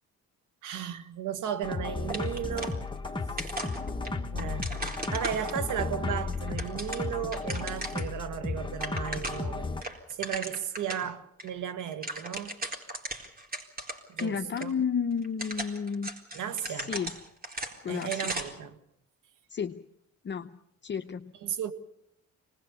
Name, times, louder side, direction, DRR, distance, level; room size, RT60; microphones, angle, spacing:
voice 1, 0.6-2.8 4.3-4.7 5.1-9.7 10.1-12.6 14.1-14.7 16.3-17.0 17.9-18.8 21.4-21.7, right 9 dB, 85° right, 1.8 m, -35 dB
sound 1, 1.6-9.8, left 3 dB, 15° left, 1.7 m, -34 dB
sound 2, 2.1-3.1 3.4-5.8 6.3-8.1 8.4-8.5 8.7-9.5 9.8-11.1 11.4-11.5 11.8-14.3 14.6-14.7 15.2-18.6, right 1 dB, 30° right, 4.0 m, -37 dB
voice 2, 14.2-16.1 16.6-17.1 17.8-18.5 19.5-19.8 20.2-20.5 20.8-21.3, left 6 dB, 40° left, 0.8 m, -32 dB
25.5 x 20.0 x 7.0 m
cardioid pair, 90°, 30 cm